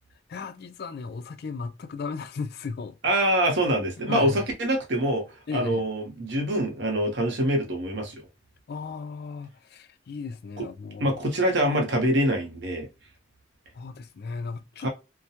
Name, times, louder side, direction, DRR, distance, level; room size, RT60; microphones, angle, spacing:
voice 1, 0.3-3.0 4.1-4.4 5.5-5.9 8.7-11.2 13.7-14.9, left 5 dB, 55° left, 0.4 m, -35 dB
voice 2, 3.0-5.2 5.5-8.2 10.6-10.7 11.0-12.9 14.8-14.9, right 1 dB, 65° right, 0.8 m, -25 dB
2.2 x 2.1 x 2.8 m
head